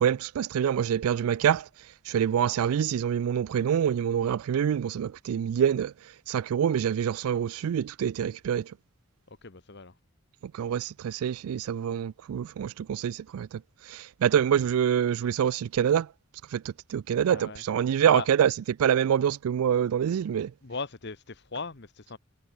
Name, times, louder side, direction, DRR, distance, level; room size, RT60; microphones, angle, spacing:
voice 1, 0.0-1.7 2.1-5.9 6.3-8.7 10.4-13.6 13.9-16.1 16.5-20.5, right 8 dB, 80° right, 0.3 m, -26 dB
voice 2, 9.3-9.9 17.3-18.3 20.6-22.2, left 4 dB, 50° left, 1.3 m, -39 dB
head